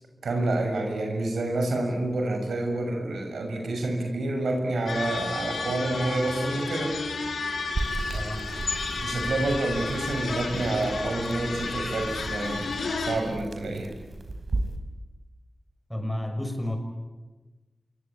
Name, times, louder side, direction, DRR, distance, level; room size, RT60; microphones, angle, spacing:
voice 1, 0.2-7.0 9.0-12.7 13.0-13.9, right 2 dB, 90° right, 3 dB, 6.7 m, -28 dB
sound 1, 4.9-13.2, left 4 dB, 85° left, 4.6 m, -32 dB
sound 2, 7.7-14.8, right 2 dB, 55° right, 4.9 m, -35 dB
voice 2, 8.1-8.4 15.9-16.8, left 1 dB, 5° left, 5 dB, 6.6 m, -31 dB
27.5 x 22.5 x 9.3 m, 1.2 s
cardioid pair, 60°, 0 cm